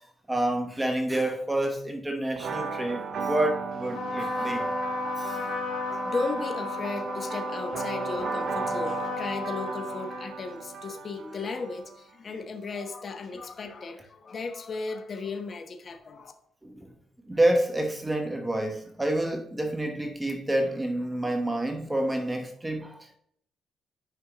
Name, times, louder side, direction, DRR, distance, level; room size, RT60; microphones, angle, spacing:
voice 1, 0.3-4.6 5.2-5.5 16.6-16.9 17.3-23.2, right 1 dB, 15° right, 1.0 m, -28 dB
sound 1, 2.4-12.0, right 5 dB, 60° right, 0.8 m, -36 dB
Trumpet, 3.9-10.7, left 2 dB, 70° left, 2.9 m, -33 dB
voice 2, 5.3-16.3, left 4 dB, 45° left, 1.0 m, -35 dB
9.1 x 5.5 x 2.9 m
cardioid pair, 90°, 0 cm